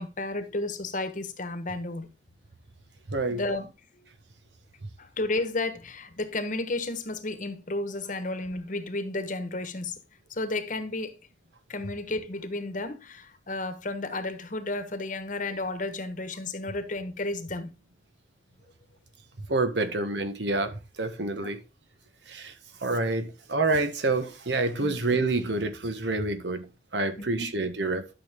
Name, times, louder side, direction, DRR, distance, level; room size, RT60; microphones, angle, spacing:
voice 1, 0.0-2.1 3.3-3.7 5.0-10.0 10.3-11.2 11.7-17.7 21.4-21.5 24.8-24.9 27.2-27.5, left 2 dB, 45° left, 1.2 m, -32 dB
voice 2, 3.1-3.4 19.5-21.6 22.3-28.1, right 2 dB, 75° right, 1.4 m, -28 dB
12.0 x 6.3 x 3.6 m
head